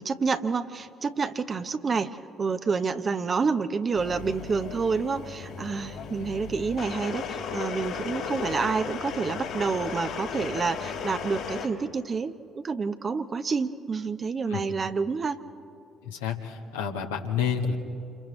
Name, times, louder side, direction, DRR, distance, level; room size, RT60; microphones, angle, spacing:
voice 1, 0.0-15.4, right 5 dB, 35° right, 9 dB, 1.0 m, -28 dB
sound 1, 3.9-11.7, left 6 dB, 60° left, 2.5 m, -35 dB
voice 2, 16.0-17.8, left 7 dB, 75° left, 2 dB, 1.6 m, -29 dB
29.0 x 28.5 x 3.3 m, 2.7 s
figure-of-eight pair, 50°, 0 cm